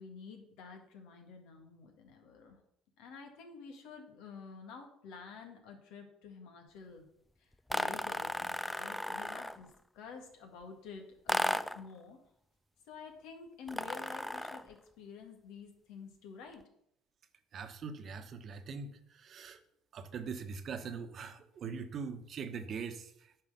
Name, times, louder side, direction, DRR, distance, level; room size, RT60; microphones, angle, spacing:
voice 1, 0.0-2.6 3.0-7.0 7.4-12.2 12.9-16.6, left 5 dB, 75° left, 4 dB, 2.0 m, -50 dB
sound 1, 7.7-9.7 11.3-11.9 13.7-14.7, left 1 dB, 5° left, 0.4 m, -35 dB
voice 2, 17.5-19.6 19.9-23.4, right 5 dB, 50° right, 9 dB, 1.1 m, -42 dB
9.2 x 4.7 x 6.8 m, 0.74 s
supercardioid pair, 85°, 0 cm